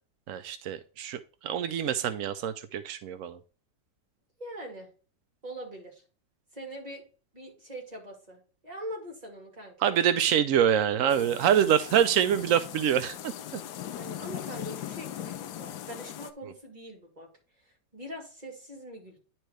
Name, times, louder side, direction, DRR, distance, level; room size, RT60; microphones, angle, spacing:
voice 1, 0.3-3.4 9.8-13.6, right 9 dB, 80° right, 10 dB, 0.7 m, -25 dB
voice 2, 4.4-4.9 5.4-6.0 6.5-7.0 7.3-10.0 13.9-17.3 17.6-19.2, right 1 dB, 20° right, -1 dB, 2.5 m, -42 dB
sound 1, 11.1-16.3, left 11 dB, 70° left, 1.2 m, -40 dB
10.0 x 4.5 x 3.2 m, 0.37 s
omnidirectional pair, 1.9 m